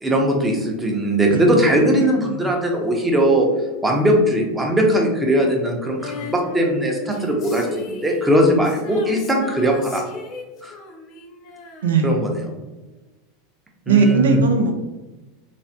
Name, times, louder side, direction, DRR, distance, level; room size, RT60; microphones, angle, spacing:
voice 1, 0.0-3.5 3.8-10.0 10.6-10.7 12.0-12.3 13.9-14.4, equal, 15° right, 1 dB, 0.7 m, -19 dB
voice 2, 1.3-2.2 11.8-12.2 13.9-14.7, right 4 dB, 80° right, 5 dB, 0.4 m, -19 dB
Female singing, 6.0-12.6 12.9-13.0, left 2 dB, 45° left, 0.7 m, -36 dB
3.1 x 2.1 x 2.7 m, 1.1 s
hypercardioid pair, 90°, 0 cm